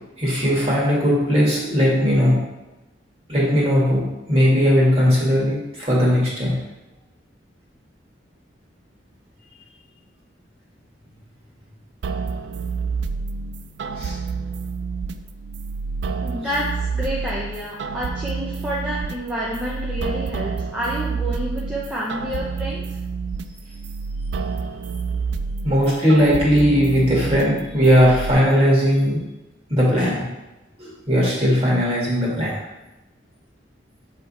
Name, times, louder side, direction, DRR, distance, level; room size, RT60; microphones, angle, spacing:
voice 1, 0.2-2.4 3.3-4.0 4.3-6.6 14.0-14.1 25.6-29.2 29.7-30.3 30.8-32.5, equal, 30° right, -5 dB, 2.0 m, -18 dB
sound 1, 12.0-28.3, right 4 dB, 70° right, 0.4 m, -29 dB
voice 2, 16.2-23.0, equal, 5° right, -6 dB, 0.7 m, -29 dB
7.3 x 3.5 x 4.3 m, 1.0 s
head